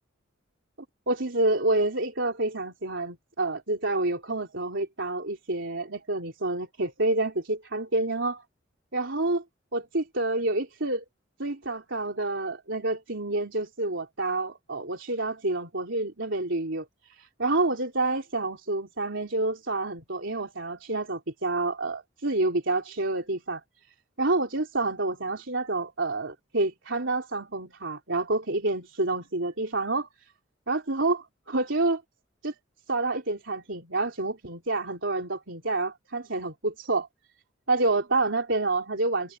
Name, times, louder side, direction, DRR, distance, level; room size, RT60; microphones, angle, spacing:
voice 1, 1.1-8.4 8.9-9.4 9.7-11.0 11.4-23.6 24.2-30.1 30.7-32.0 32.4-32.5 32.9-37.1 37.7-39.4, right 2 dB, 70° right, 3.9 m, -28 dB
head